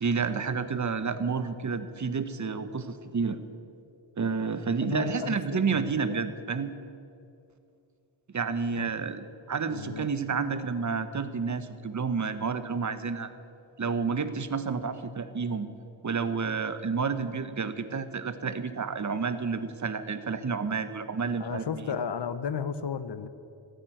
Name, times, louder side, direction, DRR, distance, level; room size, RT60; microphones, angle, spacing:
voice 1, 0.0-3.4 4.2-6.7 8.3-13.3 13.8-15.7 16.0-21.6, right 5 dB, 35° right, 11 dB, 1.1 m, -30 dB
voice 2, 4.8-6.2 8.7-8.9 9.5-10.2 21.4-23.3, left 7 dB, 55° left, 12 dB, 1.0 m, -34 dB
14.0 x 9.0 x 9.1 m, 2.5 s
cardioid pair, 70°, 48 cm